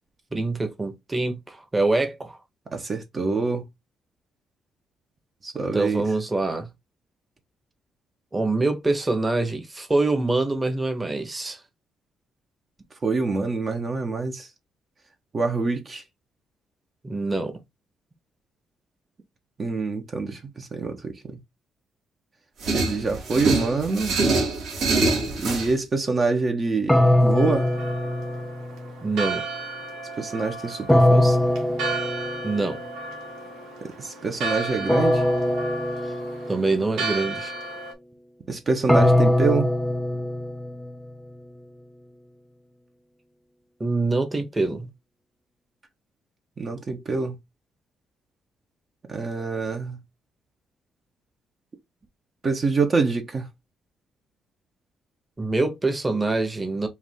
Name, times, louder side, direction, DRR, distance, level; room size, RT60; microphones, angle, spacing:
voice 1, 0.3-2.4 5.7-6.7 8.3-11.6 17.0-17.5 29.0-29.4 32.4-32.8 36.0-36.1 36.5-37.5 43.8-44.9 55.4-56.9, right 2 dB, 20° right, 1.2 m, -25 dB
voice 2, 2.7-3.6 5.4-6.1 13.0-14.5 15.3-16.0 19.6-21.4 22.7-24.2 25.4-27.7 30.2-31.4 33.8-35.2 38.5-39.7 46.6-47.4 49.1-50.0 52.4-53.5, right 4 dB, 40° right, 1.1 m, -26 dB
sound 1, 22.6-25.7, right 3 dB, 75° right, 2.7 m, -24 dB
sound 2, 26.9-28.9 30.9-32.7 34.9-36.7 38.9-41.1, left 1 dB, 5° left, 0.5 m, -21 dB
Church bell, 27.4-37.9, right 3 dB, 90° right, 1.5 m, -34 dB
4.8 x 2.7 x 3.6 m
cardioid pair, 90°, 0 cm